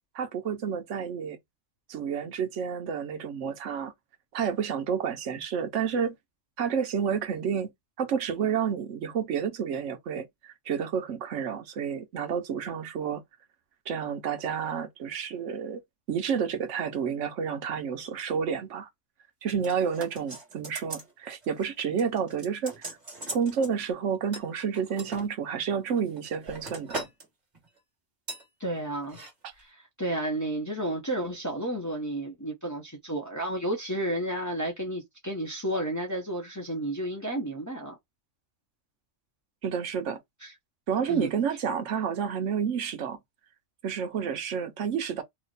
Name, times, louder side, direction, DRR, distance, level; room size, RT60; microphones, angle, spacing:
voice 1, 0.1-1.4 1.9-3.9 4.3-6.2 6.6-7.7 8.0-13.2 13.9-15.8 16.1-18.9 19.4-22.9 23.3-27.0 39.6-40.2 40.9-43.2 43.8-45.2, right 7 dB, 75° right, 1.0 m, -30 dB
sound 1, 19.6-21.1 21.4-21.7 22.0-23.7 24.3-25.3 25.9-27.3 27.5-27.8 28.3-28.5 29.0-29.3 29.6-29.7, right 2 dB, 35° right, 1.6 m, -40 dB
voice 2, 28.6-29.2 29.6-29.7 30.0-37.9 40.4-40.5 41.0-41.3, right 1 dB, 20° left, 0.7 m, -31 dB
3.0 x 2.1 x 3.9 m
omnidirectional pair, 1.3 m